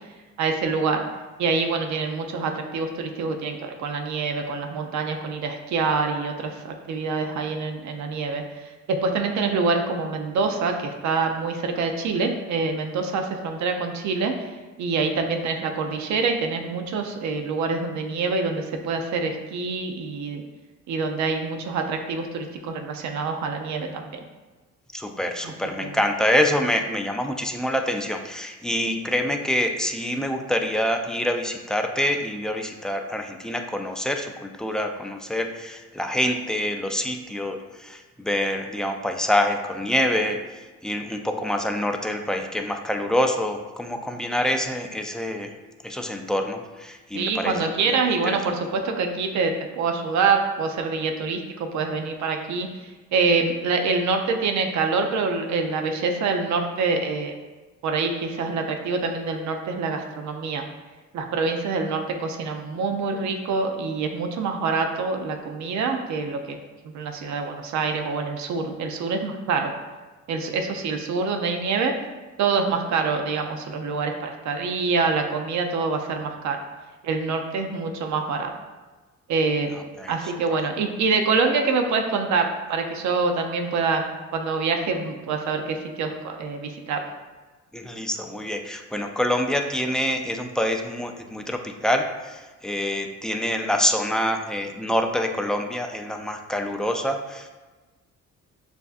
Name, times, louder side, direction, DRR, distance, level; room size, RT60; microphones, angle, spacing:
voice 1, 0.4-1.0 1.4-14.5 14.8-20.4 20.9-24.2 25.4-25.5 25.8-26.0 47.1-57.3 57.8-60.6 61.1-66.6 66.9-69.7 70.3-71.9 72.4-76.6 77.0-78.5 79.3-79.8 80.1-84.1 84.3-87.0, right 4 dB, 70° right, 4 dB, 0.6 m, -26 dB
voice 2, 24.9-40.4 40.8-45.5 45.8-47.7 48.3-48.4 80.0-80.1 87.7-97.5, left 1 dB, ahead, 4 dB, 0.3 m, -26 dB
6.7 x 2.6 x 2.4 m, 1.2 s
cardioid pair, 90°, 30 cm